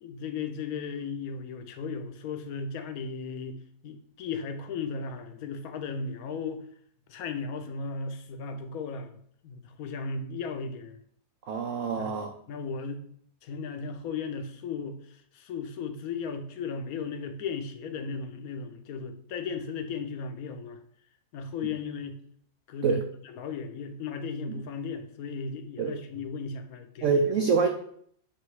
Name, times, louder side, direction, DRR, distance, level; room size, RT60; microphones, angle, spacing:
voice 1, 0.0-3.6 3.8-6.7 7.1-9.2 9.4-11.0 12.0-12.2 12.5-13.0 13.4-20.8 21.3-22.2 22.7-27.2, left 5 dB, 65° left, 7 dB, 1.0 m, -36 dB
voice 2, 11.5-12.3 22.8-23.0 25.8-25.9 27.0-27.7, right 5 dB, 85° right, 4 dB, 0.6 m, -25 dB
6.8 x 3.1 x 4.7 m, 0.63 s
omnidirectional pair, 2.0 m